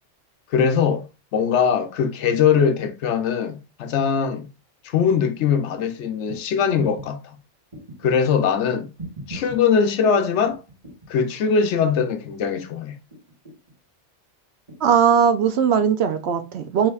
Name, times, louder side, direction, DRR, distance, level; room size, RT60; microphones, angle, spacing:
voice 1, 0.5-1.0 1.3-4.5 4.8-7.4 8.0-8.9 9.3-10.6 11.1-13.0, left 6 dB, 70° left, 0.9 m, -21 dB
sound 1, 6.3-6.4 6.8-7.1 7.7-8.3 9.0-9.6 10.5-11.1 11.5-12.1 13.1-13.8 14.7-14.8, right 2 dB, 30° right, 1.7 m, -38 dB
voice 2, 14.8-16.9, right 7 dB, 65° right, 0.8 m, -19 dB
5.3 x 3.4 x 2.3 m
omnidirectional pair, 1.3 m